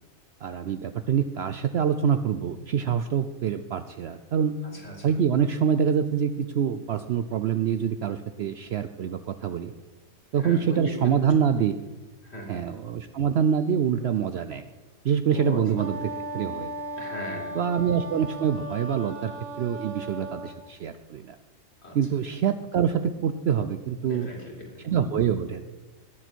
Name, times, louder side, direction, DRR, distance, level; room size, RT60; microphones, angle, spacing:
voice 1, 0.4-4.6 5.0-9.7 10.3-11.7 12.5-14.6 15.0-16.7 17.5-19.3 19.6-21.4 21.9-24.3 24.8-25.6, right 8 dB, 65° right, 10 dB, 0.7 m, -25 dB
voice 2, 4.7-5.1 10.3-11.1 12.2-12.6 15.3-15.6 17.0-17.6 21.8-22.0 24.0-24.8, left 1 dB, 50° left, -2 dB, 3.2 m, -37 dB
Wind instrument woodwind instrument, 15.8-20.6, right 1 dB, 80° right, 1.9 m, -36 dB
19.5 x 6.7 x 4.5 m, 1.2 s
omnidirectional pair, 1.4 m